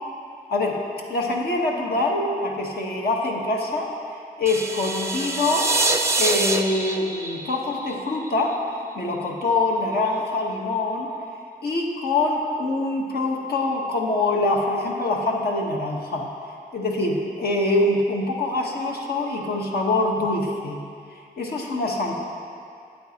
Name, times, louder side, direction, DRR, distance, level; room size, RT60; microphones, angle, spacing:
voice 1, 0.5-0.8 1.1-3.9 4.4-5.7 6.2-8.6 8.9-11.1 11.6-16.3 16.7-20.8 21.4-22.1, left 2 dB, 75° left, -1 dB, 1.2 m, -24 dB
sound 1, 4.5-8.5, right 2 dB, 15° right, 0.5 m, -25 dB
12.5 x 8.7 x 2.9 m, 2.4 s
wide cardioid pair, 100°, 16 cm